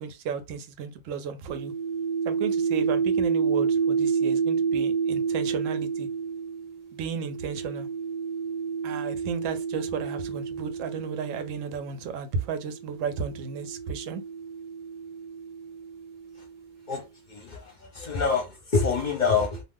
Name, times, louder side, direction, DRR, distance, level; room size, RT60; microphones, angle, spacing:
voice 1, 0.0-1.7 2.2-6.1 6.9-7.9 8.8-14.2, right 6 dB, 90° right, 1.0 m, -34 dB
sound 1, 1.5-11.8 12.7-16.5, right 6 dB, 40° right, 0.6 m, -29 dB
voice 2, 17.3-17.6 17.9-19.6, left 5 dB, 45° left, 0.6 m, -25 dB
2.4 x 2.4 x 3.4 m
omnidirectional pair, 1.3 m